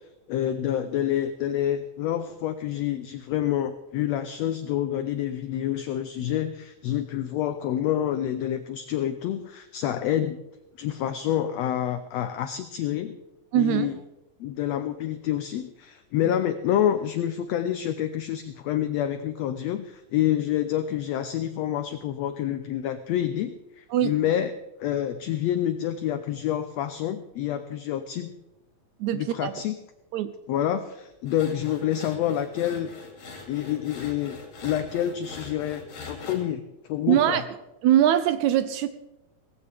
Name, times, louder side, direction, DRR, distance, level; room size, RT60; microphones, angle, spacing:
voice 1, 0.3-10.4 10.8-13.2 13.5-14.0 14.4-28.3 29.1-29.8 30.5-32.9 33.5-36.6 36.9-37.4, left 11 dB, 85° left, 10 dB, 1.5 m, -28 dB
voice 2, 13.5-13.9 23.9-24.1 29.0-29.5 30.1-30.3 37.1-37.4 37.8-38.9, right 11 dB, 80° right, 12 dB, 1.8 m, -22 dB
sound 1, 31.3-36.4, left 3 dB, 60° left, 3.8 m, -42 dB
17.5 x 15.5 x 3.4 m, 0.97 s
omnidirectional pair, 3.7 m